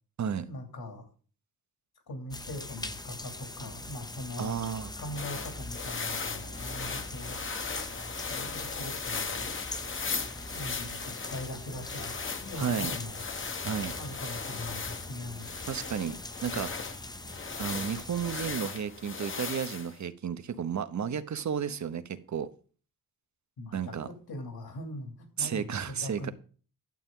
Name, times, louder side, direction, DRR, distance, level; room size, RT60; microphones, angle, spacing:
voice 1, 0.4-1.0 2.1-4.5 5.0-7.4 8.3-9.5 10.5-13.2 14.0-15.6 23.6-26.3, left 1 dB, 70° left, 2.8 m, -41 dB
sound 1, 2.3-18.6, left 2 dB, 10° left, 0.6 m, -42 dB
voice 2, 4.4-4.9 12.6-12.9 13.6-13.9 15.7-16.7 17.6-22.5 23.7-24.1 25.4-26.3, right 7 dB, 45° right, 0.8 m, -33 dB
sound 2, 5.1-20.0, left 5 dB, 30° left, 0.9 m, -38 dB
11.5 x 8.0 x 3.7 m
wide cardioid pair, 150°, 39 cm